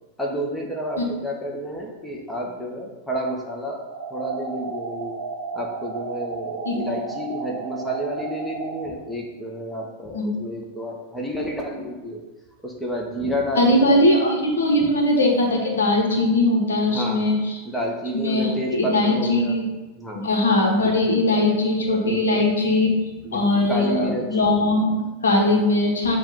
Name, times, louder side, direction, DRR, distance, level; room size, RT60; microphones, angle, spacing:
voice 1, 0.2-3.8 4.1-5.1 5.5-12.2 12.6-14.1 14.8-14.9 16.9-17.4 17.6-19.6 20.0-20.3 22.0-22.4 23.2-24.3, equal, 5° left, -1 dB, 0.9 m, -30 dB
sound 1, 3.8-8.8, right 4 dB, 65° right, 0.8 m, -33 dB
voice 2, 13.5-17.6 18.1-19.6 20.1-22.9 23.3-26.2, left 1 dB, 70° left, 0 dB, 1.0 m, -20 dB
7.0 x 2.5 x 5.5 m, 1.1 s
figure-of-eight pair, 90°, 0 cm